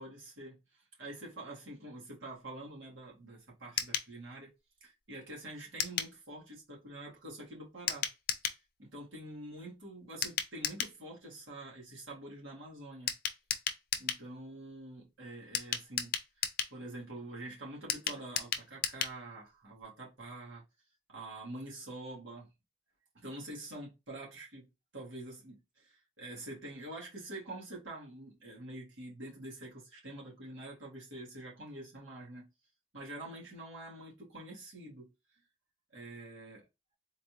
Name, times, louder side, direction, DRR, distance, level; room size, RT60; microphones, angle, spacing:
voice 1, 0.0-4.5 4.8-8.1 8.8-13.1 14.0-20.6 21.1-22.5 23.1-32.5 32.9-35.1 35.9-36.7, right 1 dB, 85° right, 1.9 m, -46 dB
sound 1, 3.8-4.1 5.8-6.1 7.9-8.6 10.2-11.0 13.1-14.2 15.5-16.8 17.9-19.2 19.5-19.6 19.8-19.9, left 8 dB, 50° left, 0.5 m, -34 dB
3.9 x 2.6 x 3.0 m
head